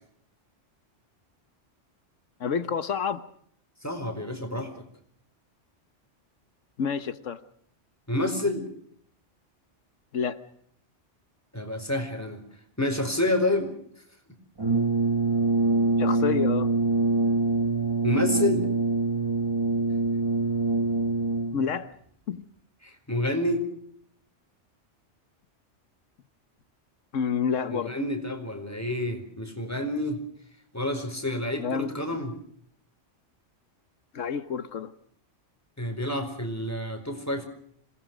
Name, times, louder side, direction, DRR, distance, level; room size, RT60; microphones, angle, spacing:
voice 1, 2.4-3.2 6.8-7.4 10.1-10.4 16.0-16.7 21.5-21.9 22.3-22.4 27.1-27.9 31.6-31.9 34.1-34.9, left 6 dB, 85° left, 12 dB, 1.5 m, -28 dB
voice 2, 3.8-4.7 8.1-8.7 11.5-12.4 12.8-13.7 17.8-18.7 22.8-23.7 27.7-30.2 30.7-32.3 35.8-37.5, left 1 dB, 10° left, 5 dB, 4.6 m, -28 dB
Brass instrument, 14.6-21.7, right 3 dB, 20° right, 1.4 m, -24 dB
27.0 x 19.5 x 6.2 m, 0.64 s
omnidirectional pair, 1.3 m